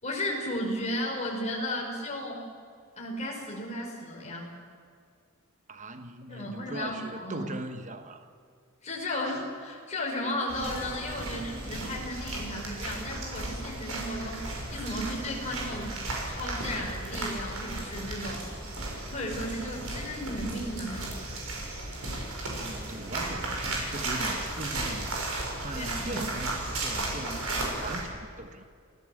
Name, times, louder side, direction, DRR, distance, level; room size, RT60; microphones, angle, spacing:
voice 1, 0.0-2.4 3.0-4.5 6.3-7.5 8.8-14.4 14.7-15.9 16.2-18.5 19.1-21.1 25.7-26.3, left 1 dB, 30° left, -1 dB, 5.2 m, -34 dB
voice 2, 5.7-8.3 22.6-25.2 25.6-28.6, right 1 dB, 35° right, 8 dB, 1.2 m, -39 dB
sound 1, 10.5-28.0, right 2 dB, 85° right, 6.4 m, -35 dB
28.0 x 16.5 x 7.8 m, 2.2 s
head